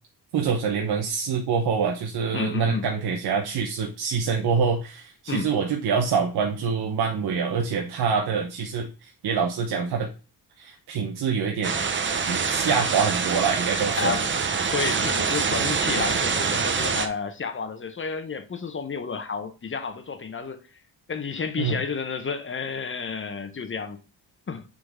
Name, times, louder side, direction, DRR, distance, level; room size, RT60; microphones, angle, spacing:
voice 1, 0.3-10.1 10.6-11.8 12.3-14.2 21.6-21.8, right 6 dB, 80° right, 1.0 m, -25 dB
voice 2, 2.3-2.9 5.3-5.5 12.7-12.9 14.0-14.3 14.7-20.6 21.1-24.0 24.5-24.6, left 5 dB, 30° left, 0.9 m, -31 dB
sound 1, 11.6-17.1, right 5 dB, 30° right, 0.7 m, -25 dB
6.6 x 3.9 x 3.6 m
cardioid pair, 115°, 38 cm